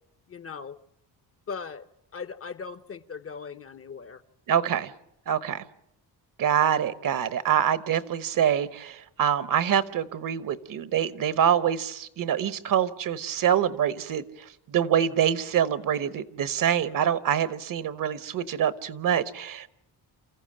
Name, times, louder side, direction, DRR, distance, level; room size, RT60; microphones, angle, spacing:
voice 1, 0.3-0.8 1.5-1.9 2.1-4.2, left 5 dB, 35° left, 0.8 m, -39 dB
voice 2, 4.5-4.9 5.3-5.6 6.4-19.7, right 9 dB, 55° right, 1.0 m, -25 dB
28.0 x 15.0 x 8.7 m
cardioid pair, 160°, 40 cm